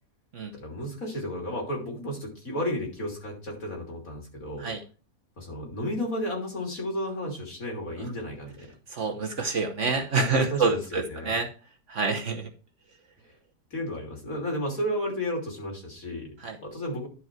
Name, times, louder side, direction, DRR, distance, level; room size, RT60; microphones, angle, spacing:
voice 1, 0.5-4.7 5.4-8.7 10.2-11.3 13.7-16.3 16.6-17.1, equal, 55° left, 0 dB, 3.5 m, -33 dB
voice 2, 8.9-11.5 11.9-12.5 16.4-16.6, right 4 dB, 55° right, 4 dB, 1.2 m, -27 dB
11.5 x 5.3 x 4.5 m, 0.35 s
omnidirectional pair, 1.7 m